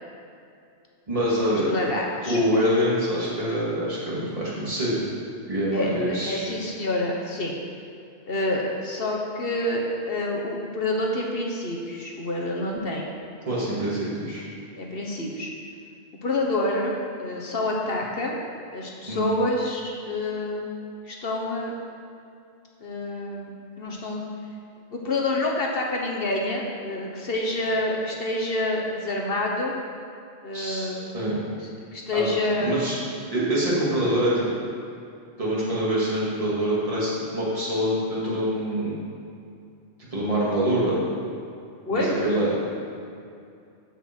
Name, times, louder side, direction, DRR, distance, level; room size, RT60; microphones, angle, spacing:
voice 1, 1.1-1.7 2.3-5.0 5.5-6.5 13.5-14.4 19.1-19.3 30.5-31.4 32.1-32.3 32.6-33.0 33.3-34.5 35.4-39.0 40.1-41.0 41.9-42.6, equal, 30° right, -7 dB, 2.4 m, -25 dB
voice 2, 1.7-2.4 5.7-7.5 8.3-13.1 14.8-15.5 16.2-18.4 18.7-20.7 21.1-21.7 22.8-23.5 23.8-24.2 24.9-29.7 30.4-31.1 31.9-32.8 41.9-42.1, left 2 dB, 60° left, -1 dB, 1.3 m, -27 dB
13.5 x 5.7 x 4.5 m, 2.5 s
omnidirectional pair, 1.2 m